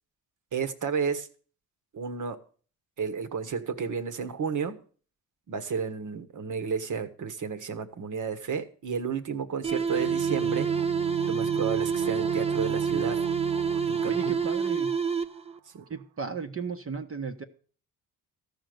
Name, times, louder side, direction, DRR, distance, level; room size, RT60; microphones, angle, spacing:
voice 1, 0.5-1.3 1.9-2.4 3.0-4.8 5.5-10.7 11.3-13.2 13.9-14.4 15.7-15.8, right 6 dB, 50° right, 1.5 m, -32 dB
sound 1, 9.6-15.6, right 6 dB, 15° right, 0.8 m, -28 dB
sound 2, 9.9-15.6 15.8-15.9, right 14 dB, 75° right, 0.6 m, -38 dB
voice 2, 14.0-14.9 15.9-17.4, right 5 dB, 35° right, 1.2 m, -35 dB
13.5 x 5.3 x 7.8 m
supercardioid pair, 65°, 39 cm